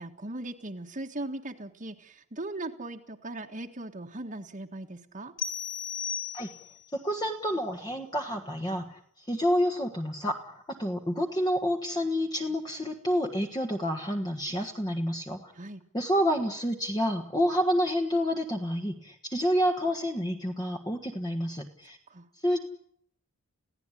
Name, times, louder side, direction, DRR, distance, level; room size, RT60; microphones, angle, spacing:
voice 1, 0.0-5.3 15.6-15.8 22.1-22.3, right 2 dB, 35° right, 1 dB, 1.6 m, -39 dB
sound 1, 5.4-6.9, left 7 dB, 55° left, 3.9 m, -35 dB
voice 2, 6.9-10.4 10.7-15.5 15.9-22.0 22.4-22.6, equal, 15° left, 2 dB, 1.6 m, -29 dB
29.5 x 16.5 x 10.0 m, 0.70 s
head